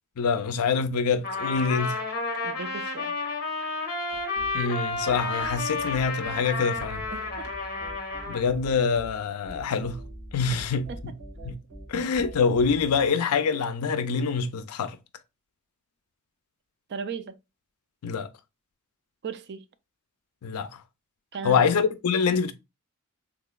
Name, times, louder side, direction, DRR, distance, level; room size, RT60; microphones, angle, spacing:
voice 1, 0.2-2.0 4.5-7.0 8.3-10.0 10.3-11.1 11.4-11.5 11.9-15.0 18.0-18.3 20.4-20.8 21.4-22.5, left 5 dB, 80° left, 0.4 m, -25 dB
Trumpet, 1.2-8.5, left 3 dB, 45° left, 0.9 m, -31 dB
voice 2, 2.4-3.1 7.1-7.5 10.5-10.6 16.9-17.4 19.2-19.6 21.3-21.7, right 5 dB, 50° right, 0.3 m, -36 dB
sound 1, 4.1-13.1, right 1 dB, 70° right, 2.1 m, -44 dB
3.7 x 2.9 x 2.2 m
head